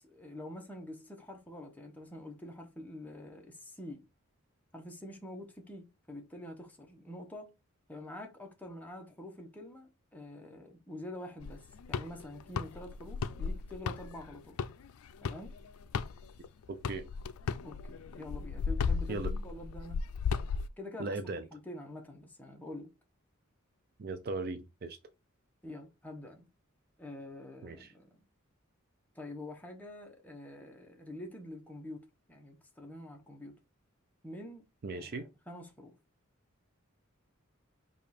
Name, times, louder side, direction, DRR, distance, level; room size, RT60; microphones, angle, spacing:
voice 1, 0.0-4.1 4.7-7.5 7.9-14.6 15.2-15.5 17.6-20.0 20.8-21.2 21.5-22.9 25.6-26.5 27.0-28.2 29.1-33.6 34.2-34.6 34.9-35.9, left 1 dB, 10° left, 0.8 m, -46 dB
sound 1, 11.4-16.5 16.8-20.7, left 5 dB, 90° left, 0.4 m, -35 dB
voice 2, 16.7-17.1 19.1-19.3 21.0-21.5 24.0-25.0 27.6-27.9 34.8-35.3, right 3 dB, 45° right, 0.4 m, -38 dB
5.0 x 2.4 x 4.1 m
head